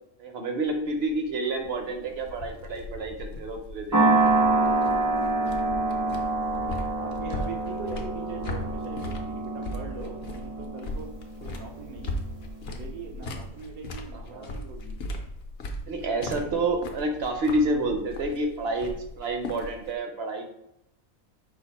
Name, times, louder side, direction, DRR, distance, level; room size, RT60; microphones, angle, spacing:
voice 1, 0.2-4.4 14.1-14.6 15.9-20.6, right 2 dB, 55° right, 4 dB, 0.8 m, -29 dB
sound 1, 0.7-20.0, left 1 dB, 55° left, 0.8 m, -38 dB
sound 2, 3.9-12.4, right 2 dB, 30° right, 0.3 m, -26 dB
voice 2, 6.5-12.3 12.6-15.0, right 4 dB, 85° right, 2 dB, 1.3 m, -41 dB
5.0 x 2.5 x 4.1 m, 0.83 s
omnidirectional pair, 1.5 m